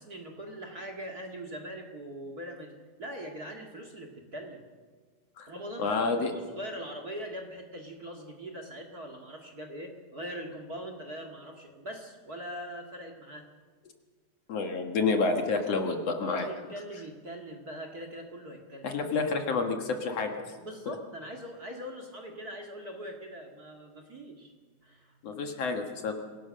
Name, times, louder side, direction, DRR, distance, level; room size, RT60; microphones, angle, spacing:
voice 1, 0.0-4.6 5.5-13.5 16.3-18.9 20.6-24.5 24.8-25.2, equal, 35° right, 4 dB, 2.1 m, -41 dB
voice 2, 5.8-6.3 14.5-16.5 18.8-20.5 20.9-21.0 25.2-26.2, left 4 dB, 60° left, 4 dB, 2.6 m, -29 dB
26.0 x 17.5 x 6.4 m, 1.4 s
omnidirectional pair, 3.5 m